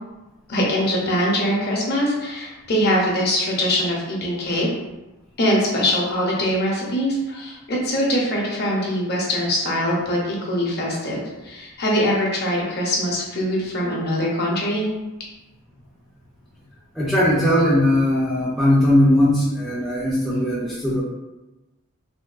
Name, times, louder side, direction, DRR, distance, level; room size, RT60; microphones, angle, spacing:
voice 1, 0.5-4.7 5.4-14.9, equal, 45° left, -3 dB, 0.7 m, -22 dB
voice 2, 16.9-21.0, left 1 dB, ahead, -8 dB, 0.4 m, -19 dB
3.4 x 2.3 x 2.4 m, 1.0 s
head